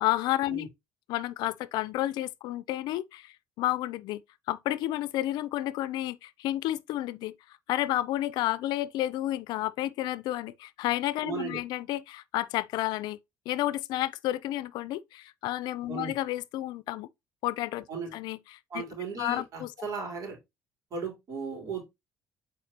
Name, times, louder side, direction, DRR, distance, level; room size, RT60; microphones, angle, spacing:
voice 1, 0.0-0.7 1.1-4.2 4.5-13.2 13.5-17.1 17.4-17.9 18.1-18.9 19.2-19.7, left 15 dB, 75° left, 0.5 m, -31 dB
voice 2, 11.2-11.6 15.9-16.1 17.9-18.1 18.7-20.4 20.9-21.8, right 5 dB, 50° right, 3.8 m, -36 dB
8.3 x 4.7 x 2.9 m
supercardioid pair, 85°, 7 cm